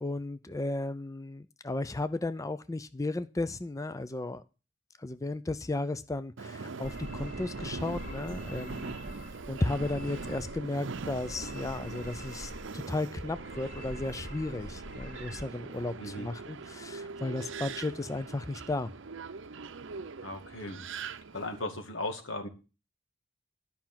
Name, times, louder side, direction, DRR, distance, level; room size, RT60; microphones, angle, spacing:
voice 1, 0.0-4.4 5.0-8.9 9.5-18.9, left 2 dB, 15° left, 13 dB, 0.5 m, -34 dB
Subway metro underground, 6.4-21.6, right 4 dB, 70° right, 0.7 m, -42 dB
sound 1, 6.8-10.6 10.9-12.8 13.1-15.4, equal, 45° left, 1.3 m, -45 dB
voice 2, 16.0-16.3 20.2-20.8 21.3-22.5, left 2 dB, 85° left, 5 dB, 2.3 m, -37 dB
11.0 x 5.8 x 7.4 m, 0.32 s
head